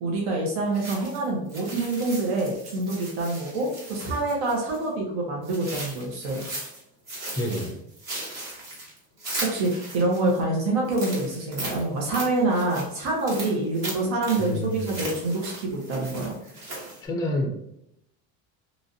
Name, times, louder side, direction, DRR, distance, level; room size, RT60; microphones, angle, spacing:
voice 1, 0.0-6.4 9.4-16.3, right 2 dB, 70° right, -2 dB, 0.9 m, -26 dB
sound 1, 0.7-4.9 5.4-6.8 7.1-10.4 10.8-17.0, right 1 dB, 45° right, 1.3 m, -37 dB
voice 2, 7.4-7.8 14.4-15.0 17.0-17.6, equal, 10° left, 1 dB, 0.4 m, -28 dB
3.1 x 2.5 x 2.6 m, 0.79 s
cardioid pair, 140°, 39 cm